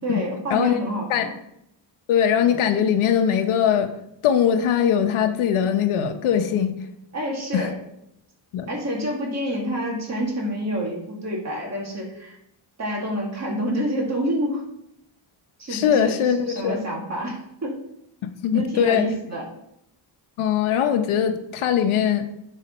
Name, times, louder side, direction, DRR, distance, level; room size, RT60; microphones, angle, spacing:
voice 1, 0.0-1.3 7.1-7.7 8.7-12.4 12.8-14.6 15.6-17.8 18.5-19.4, equal, 35° right, -1 dB, 1.9 m, -28 dB
voice 2, 2.1-3.9 4.2-6.8 7.5-7.7 8.5-8.7 15.7-16.8 18.2-19.1 20.4-22.3, left 8 dB, 90° left, 7 dB, 0.9 m, -21 dB
8.3 x 4.2 x 5.4 m, 0.78 s
cardioid pair, 165°, 48 cm